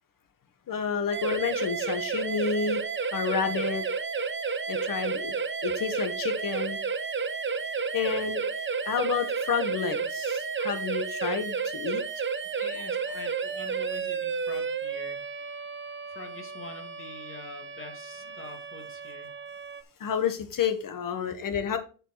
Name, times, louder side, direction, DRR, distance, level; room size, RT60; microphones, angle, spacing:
voice 1, 0.7-2.8 3.1-3.8 4.7-5.3 5.6-6.8 7.9-8.4 8.8-12.0 20.0-21.8, left 7 dB, 75° left, 9 dB, 1.6 m, -30 dB
sound 1, 1.1-19.8, right 5 dB, 35° right, 1.0 m, -32 dB
voice 2, 3.4-3.7 12.6-15.6 16.1-19.3, left 3 dB, 40° left, 3 dB, 2.8 m, -45 dB
9.1 x 5.8 x 4.1 m, 0.36 s
cardioid pair, 85°, 33 cm